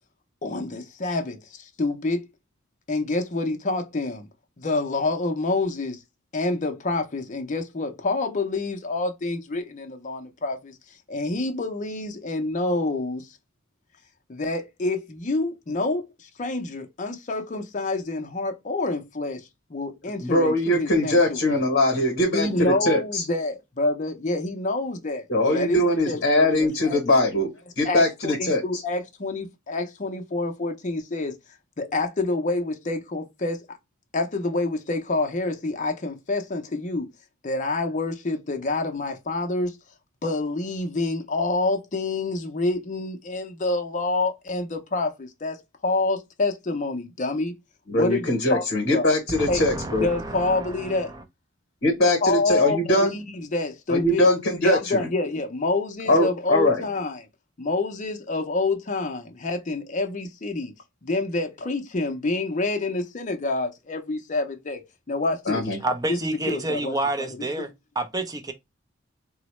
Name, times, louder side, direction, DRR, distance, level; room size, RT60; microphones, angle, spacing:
voice 1, 0.4-2.2 2.9-4.3 4.6-6.0 6.3-10.7 11.1-13.3 14.3-19.4 19.7-21.6 22.3-27.0 27.8-31.3 31.8-33.6 34.1-37.1 37.4-39.8 40.2-45.6 45.8-47.5 47.9-48.6 48.9-49.1 49.5-49.6 50.0-51.1 52.2-54.3 54.6-57.3 57.6-60.7 61.0-64.8 65.1-65.6 66.1-66.2 66.5-67.0, left 2 dB, 35° left, 0.5 m, -27 dB
voice 2, 20.2-23.2 25.3-27.5 27.8-28.8 47.9-50.1 51.8-53.1 53.9-55.1 56.1-56.8 65.5-65.8, left 1 dB, 50° left, 0.9 m, -21 dB
voice 3, 49.3-51.2 65.8-67.7 68.0-68.5, right 2 dB, 20° right, 0.4 m, -29 dB
3.9 x 2.0 x 3.0 m
head